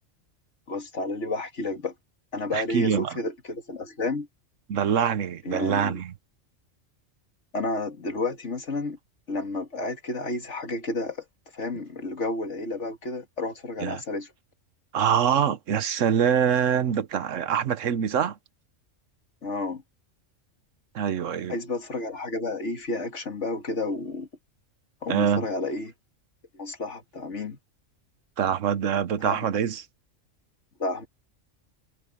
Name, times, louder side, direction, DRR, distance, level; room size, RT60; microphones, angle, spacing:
voice 1, 0.7-1.9 2.3-4.3 5.4-6.0 7.5-9.0 9.3-11.2 11.5-14.3 19.4-19.8 21.5-24.3 25.0-25.9 26.5-27.6 29.2-29.4 30.8-31.1, left 2 dB, 65° left, 2.5 m, -31 dB
voice 2, 2.5-3.1 4.7-6.1 13.8-14.0 14.9-18.4 20.9-21.6 25.1-25.4 28.4-29.8, right 8 dB, 75° right, 1.2 m, -24 dB
omnidirectional pair, 1.3 m